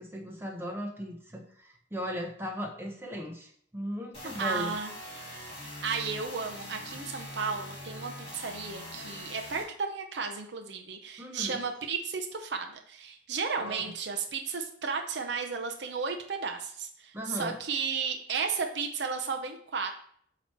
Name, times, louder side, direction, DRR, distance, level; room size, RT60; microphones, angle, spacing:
voice 1, 0.0-4.8 11.2-11.6 13.6-13.9 17.1-17.5, equal, 10° right, 1 dB, 0.9 m, -37 dB
sound 1, 4.1-9.6, left 1 dB, 30° left, 1.8 m, -43 dB
voice 2, 4.4-4.9 5.8-19.9, right 5 dB, 60° right, 4 dB, 0.6 m, -34 dB
8.0 x 3.0 x 4.4 m, 0.62 s
head